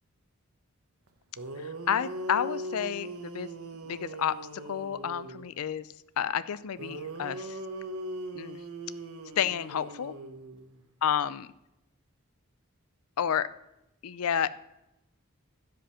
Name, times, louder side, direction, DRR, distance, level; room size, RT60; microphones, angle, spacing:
sound 1, 1.1-1.2 1.4-5.5 6.8-10.8, right 1 dB, 90° right, 1.0 m, -40 dB
voice 1, 1.6-3.5 3.8-4.4 4.7-7.6 8.3-8.6 9.4-10.1 11.0-11.5 13.2-13.5 14.0-14.5, left 8 dB, 80° left, 15 dB, 0.4 m, -30 dB
12.5 x 5.1 x 5.6 m, 0.88 s
head